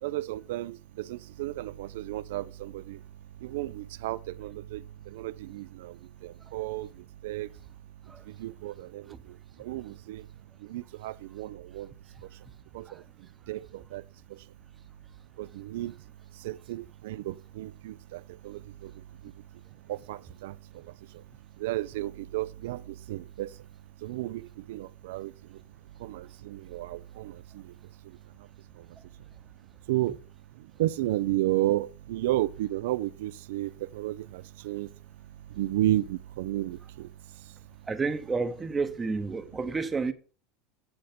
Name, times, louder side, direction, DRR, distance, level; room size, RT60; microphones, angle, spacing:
voice 1, 0.0-3.0 3.4-6.9 7.2-7.5 8.3-10.3 10.6-11.9 12.7-13.0 13.5-14.0 14.3-14.4 15.4-15.9 16.4-18.9 19.9-20.9 21.1-21.2 21.6-23.5 24.0-25.6 26.0-27.7 28.8-28.9 29.9-30.2 30.8-34.9 35.5-37.1, right 15 dB, 85° right, 0.4 m, -33 dB
voice 2, 37.9-40.1, right 4 dB, 15° right, 0.7 m, -31 dB
8.0 x 7.8 x 5.1 m
supercardioid pair, 165°, 0 cm